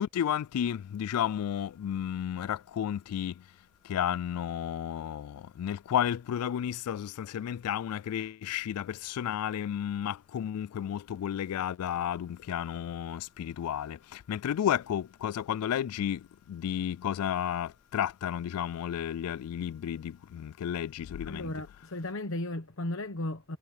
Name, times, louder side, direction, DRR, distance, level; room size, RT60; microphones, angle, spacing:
voice 1, 0.0-3.3 3.8-21.5, left 9 dB, 85° left, 0.3 m, -32 dB
voice 2, 21.2-23.6, left 1 dB, 65° left, 1.1 m, -35 dB
head